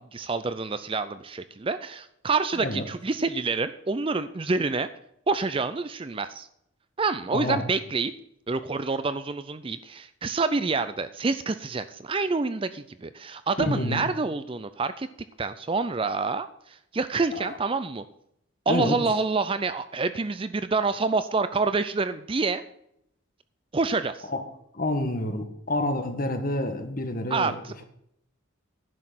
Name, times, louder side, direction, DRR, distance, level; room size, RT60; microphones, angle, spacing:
voice 1, 0.1-4.9 5.3-6.5 7.0-8.1 8.5-15.1 15.4-18.0 18.7-22.6 23.7-24.3 27.3-27.8, right 4 dB, 25° right, 12 dB, 0.4 m, -27 dB
voice 2, 7.3-7.6 13.6-14.1 17.3-17.6 18.7-19.0 24.3-24.4 24.7-27.5, left 1 dB, 40° left, 6 dB, 1.5 m, -28 dB
11.0 x 6.3 x 7.6 m, 0.75 s
head